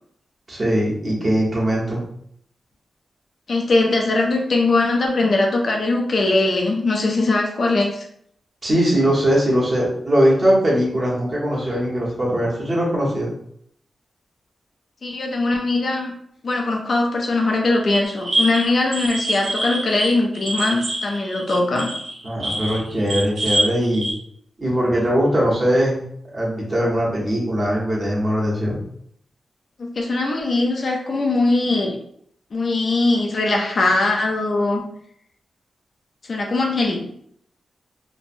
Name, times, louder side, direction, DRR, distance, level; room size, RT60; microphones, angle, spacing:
voice 1, 0.5-2.0 8.6-13.3 22.2-24.1 24.6-26.0 26.3-28.8, equal, 30° right, -5 dB, 1.0 m, -20 dB
voice 2, 3.5-8.0 15.0-16.1 16.4-21.9 29.8-31.9 32.5-34.8 36.3-37.0, left 2 dB, 50° left, 1 dB, 0.4 m, -20 dB
sound 1, 18.0-24.1, right 1 dB, 60° right, 0.9 m, -25 dB
3.0 x 2.1 x 2.5 m, 0.69 s
wide cardioid pair, 120°, 0 cm